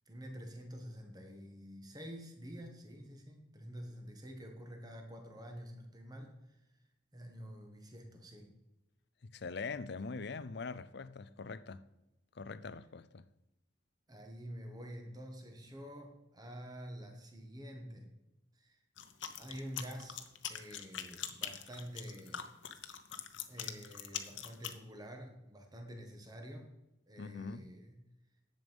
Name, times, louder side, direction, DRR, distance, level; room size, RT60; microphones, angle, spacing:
voice 1, 0.1-6.6 7.1-8.5 14.1-18.1 18.6-18.8 19.3-20.2 20.5-22.5 23.5-26.7 27.1-28.0, equal, 20° right, 1.6 m, -48 dB
voice 2, 9.2-11.8 12.4-13.2 27.2-27.7, left 4 dB, 60° left, 0.5 m, -43 dB
sound 1, 19.0-24.8, left 9 dB, 80° left, 0.9 m, -43 dB
11.0 x 7.8 x 5.3 m
head